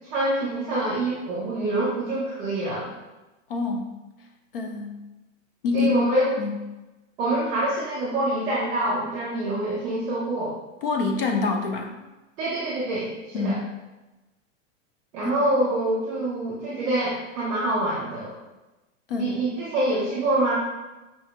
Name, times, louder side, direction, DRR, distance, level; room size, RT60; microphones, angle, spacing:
voice 1, 0.1-2.9 5.7-6.3 7.2-10.5 12.4-13.6 15.1-18.3 19.2-20.6, right 1 dB, 5° right, -13 dB, 0.4 m, -26 dB
voice 2, 3.5-3.9 4.5-5.0 5.6-6.1 6.4-6.6 10.8-11.9 13.3-13.7 19.1-19.4, left 3 dB, 45° left, 3 dB, 0.5 m, -26 dB
5.3 x 2.7 x 3.6 m, 1.1 s
supercardioid pair, 180°, 39 cm